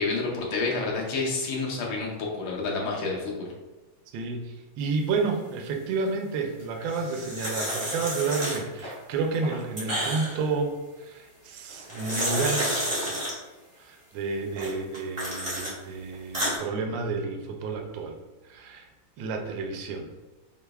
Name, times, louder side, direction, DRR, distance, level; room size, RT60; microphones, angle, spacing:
voice 1, 0.0-3.5, left 3 dB, 80° left, -2 dB, 1.6 m, -29 dB
voice 2, 4.1-13.2 13.8-18.2 18.4-18.9 19.2-20.1, right 4 dB, 75° right, 3 dB, 1.1 m, -30 dB
sound 1, 6.8-8.9 9.3-10.5 11.7-13.3 14.6-15.7 16.1-16.6, equal, 45° right, 0.4 m, -30 dB
5.4 x 2.0 x 2.3 m, 1.1 s
omnidirectional pair, 2.3 m